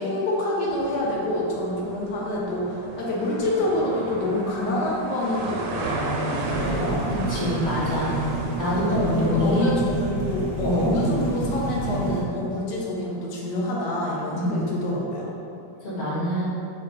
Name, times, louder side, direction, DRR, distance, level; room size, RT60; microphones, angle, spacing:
voice 1, 0.0-7.1 8.9-15.3, left 1 dB, 65° left, -4 dB, 1.3 m, -27 dB
sound 1, 0.6-9.8, right 2 dB, 90° right, 1.4 m, -34 dB
sound 2, 6.4-12.2, right 2 dB, 55° right, 0.9 m, -29 dB
voice 2, 7.1-8.2 8.6-9.7 10.6-11.0 14.3-14.6 15.8-16.5, equal, 40° left, -9 dB, 1.2 m, -25 dB
5.1 x 3.8 x 2.2 m, 2.7 s
omnidirectional pair, 2.1 m